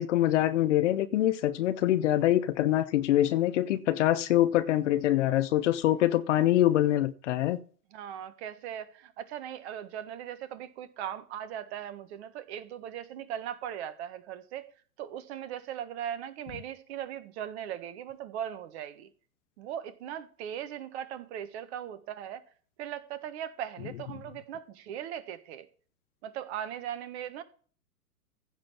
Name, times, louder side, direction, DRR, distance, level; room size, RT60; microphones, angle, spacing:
voice 1, 0.0-7.6, left 13 dB, 50° left, 1.1 m, -25 dB
voice 2, 7.9-14.7 15.0-19.1 19.6-22.4 22.8-25.7 26.2-27.4, right 10 dB, 40° right, 1.5 m, -39 dB
15.5 x 7.6 x 4.5 m
figure-of-eight pair, 110°, 47 cm